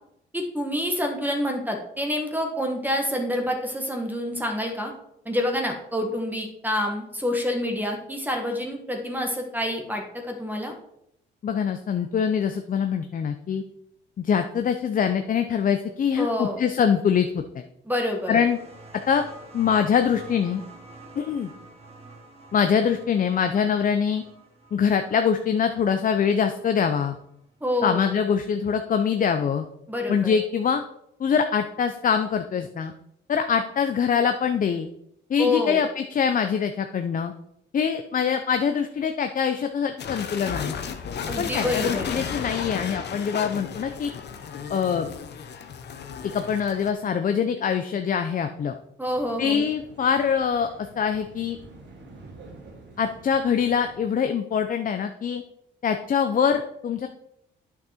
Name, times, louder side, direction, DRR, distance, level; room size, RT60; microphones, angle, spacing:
voice 1, 0.3-4.9 5.2-10.7 16.2-16.6 17.8-18.4 27.6-28.0 29.9-30.3 35.4-35.8 41.3-42.1 49.0-49.7, left 1 dB, 10° right, 2 dB, 1.5 m, -27 dB
voice 2, 11.4-13.6 14.2-17.6 18.3-18.6 19.1-19.2 19.5-20.6 21.1-21.5 22.5-24.2 24.7-27.1 27.8-29.6 30.1-30.8 31.2-32.9 33.3-34.9 35.3-37.3 37.7-40.8 41.4-44.1 44.7-45.1 46.3-48.7 49.4-50.7 51.0-51.6 53.0-55.4 55.8-57.1, left 7 dB, 45° left, 7 dB, 0.6 m, -24 dB
sound 1, 18.1-27.4 28.5-28.6, right 2 dB, 30° right, 2.2 m, -48 dB
sound 2, 40.0-46.9, left 7 dB, 60° left, 1.0 m, -33 dB
sound 3, 49.0-54.0, right 2 dB, 65° right, 2.5 m, -48 dB
8.5 x 6.2 x 4.3 m, 0.77 s
cardioid pair, 90°, 20 cm